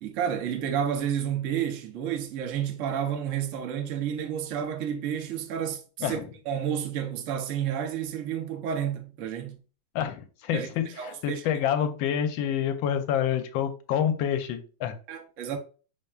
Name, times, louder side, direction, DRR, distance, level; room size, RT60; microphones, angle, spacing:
voice 1, 0.0-6.2 6.4-9.6 10.5-11.6 15.1-15.6, right 9 dB, 65° right, 0.7 m, -30 dB
voice 2, 9.9-15.0, left 9 dB, 80° left, 1.3 m, -28 dB
5.4 x 3.5 x 2.3 m
omnidirectional pair, 2.2 m